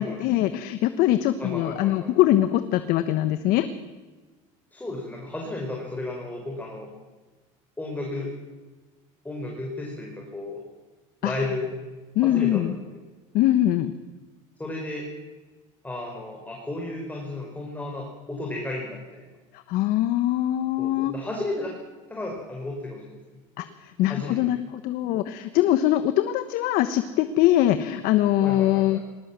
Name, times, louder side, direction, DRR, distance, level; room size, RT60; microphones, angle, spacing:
voice 1, 0.0-3.7 11.2-11.3 12.1-12.7 13.3-13.9 19.7-21.1 23.6-29.0, left 13 dB, 65° left, 11 dB, 1.2 m, -22 dB
voice 2, 1.4-2.1 4.7-6.9 7.8-8.3 9.2-10.6 11.2-11.7 12.2-12.6 14.6-15.1 15.8-19.3 20.8-21.7 22.1-23.2 24.1-24.4 28.4-29.0, left 2 dB, 10° left, 0 dB, 5.4 m, -33 dB
20.5 x 18.0 x 7.6 m, 1.3 s
supercardioid pair, 90°, 16 cm